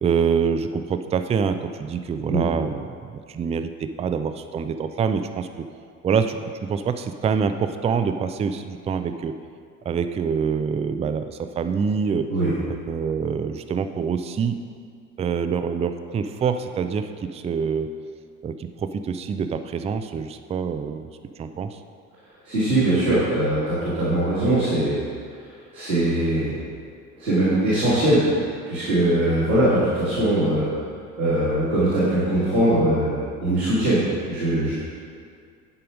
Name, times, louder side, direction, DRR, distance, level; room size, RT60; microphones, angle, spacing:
voice 1, 0.0-5.7 6.0-9.3 9.8-12.3 12.7-14.6 15.2-17.9 18.4-21.1 21.4-21.8, right 6 dB, 15° right, 9 dB, 0.4 m, -25 dB
voice 2, 22.4-25.0 25.7-26.6 27.2-28.2 28.7-30.7 31.2-34.0 34.3-34.7, right 1 dB, 90° right, -13 dB, 2.6 m, -21 dB
11.0 x 5.5 x 5.2 m, 2.2 s
figure-of-eight pair, 60°, 41 cm